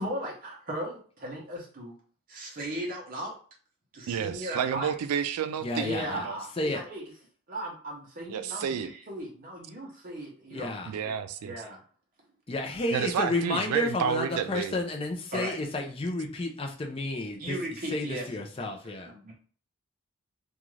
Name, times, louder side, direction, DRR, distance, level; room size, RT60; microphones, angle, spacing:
voice 1, 0.0-2.0 2.3-3.4 3.9-4.9 5.8-7.0 7.5-10.7 11.0-11.1 11.4-11.8 13.4-13.8 15.3-15.6 17.4-18.2 18.8-19.3, right 1 dB, 40° right, -2 dB, 0.7 m, -37 dB
voice 2, 4.1-6.4 8.3-8.9 10.8-11.5 12.9-14.7, right 8 dB, 90° right, 10 dB, 0.3 m, -30 dB
voice 3, 5.6-6.3 6.6-6.8 10.5-10.9 12.5-17.6 17.9-19.1, left 2 dB, 25° left, 2 dB, 0.4 m, -31 dB
2.4 x 2.3 x 3.1 m, 0.43 s
head